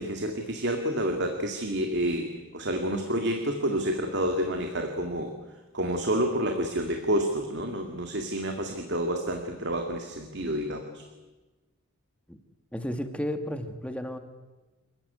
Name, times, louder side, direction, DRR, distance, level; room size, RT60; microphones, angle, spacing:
voice 1, 0.0-5.3 5.7-11.1, right 1 dB, 50° right, 4 dB, 2.2 m, -29 dB
voice 2, 12.7-14.2, equal, 5° left, 7 dB, 1.6 m, -33 dB
27.0 x 15.5 x 9.6 m, 1.2 s
head